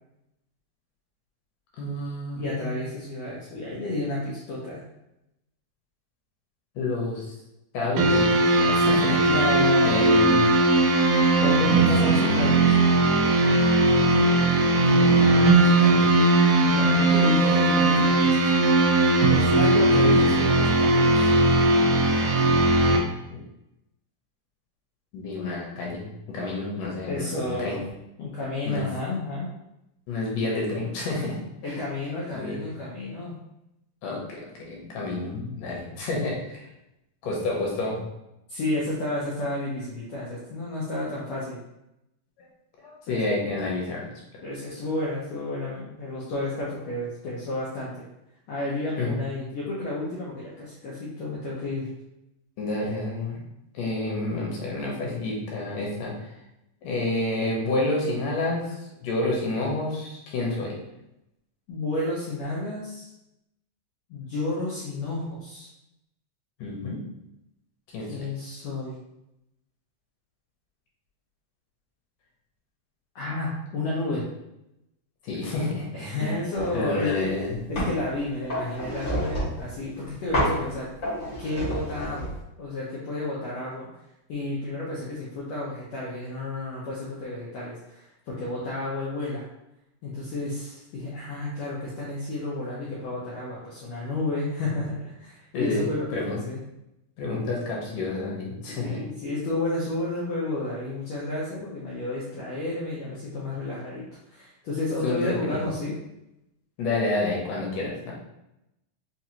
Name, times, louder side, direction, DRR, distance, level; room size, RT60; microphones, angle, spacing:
voice 1, 1.8-2.8 6.8-7.4 7.7-9.4 9.8-10.4 11.6-12.4 14.9-16.1 20.0-20.5 23.3-23.4 25.1-27.8 28.7-28.9 30.1-31.4 31.6-31.8 32.3-32.6 34.0-36.7 37.2-38.0 42.4-42.5 42.8-44.1 49.0-49.1 52.6-53.4 53.7-56.3 56.8-60.8 66.6-67.0 67.9-68.3 75.2-75.9 76.2-76.4 76.7-77.6 95.5-96.4 97.2-99.0 105.0-105.6 106.8-108.1, left 2 dB, 75° left, -3 dB, 2.2 m, -29 dB
voice 2, 2.3-4.8 9.2-10.1 11.4-12.8 16.6-18.5 19.3-21.3 27.1-27.8 28.2-29.5 31.6-33.3 38.5-41.6 43.1-43.2 44.4-48.1 48.5-51.9 61.7-63.1 64.1-65.7 68.1-69.0 73.1-74.2 75.9-77.3 77.7-80.9 81.4-83.9 84.3-89.5 90.0-96.6 98.7-106.0, left 2 dB, 90° left, -6 dB, 1.4 m, -31 dB
sound 1, 8.0-23.0, right 2 dB, 85° right, 1.6 m, -19 dB
sound 2, 76.6-76.8 77.2-78.0 78.5-79.7 80.3-80.6 81.0-82.4, equal, 55° left, 0.8 m, -29 dB
5.9 x 2.4 x 2.8 m, 0.87 s
omnidirectional pair, 4.1 m